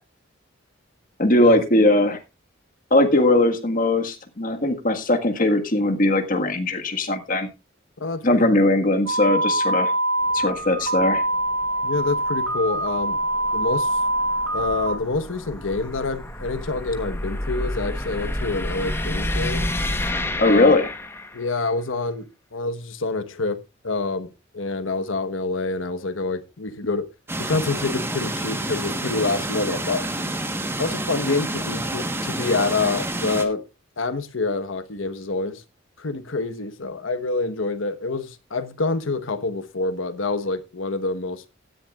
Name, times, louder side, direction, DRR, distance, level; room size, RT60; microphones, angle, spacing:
voice 1, 1.2-2.2 2.9-7.5 8.2-9.9 10.3-11.2 20.4-20.8, left 2 dB, 45° left, 1.6 m, -19 dB
voice 2, 8.0-8.5 11.8-13.2 13.5-13.9 14.5-19.7 20.5-20.8 21.3-23.6 23.8-24.3 24.5-27.1 27.4-30.0 30.8-33.6 34.0-35.6 36.0-41.4, left 3 dB, 85° left, 1.2 m, -27 dB
sound 1, 9.1-15.0, right 1 dB, 75° right, 2.6 m, -24 dB
sound 2, 10.2-21.6, left 1 dB, 10° left, 1.1 m, -31 dB
sound 3, 27.3-33.5, right 1 dB, 10° right, 1.2 m, -28 dB
17.0 x 10.5 x 2.4 m
head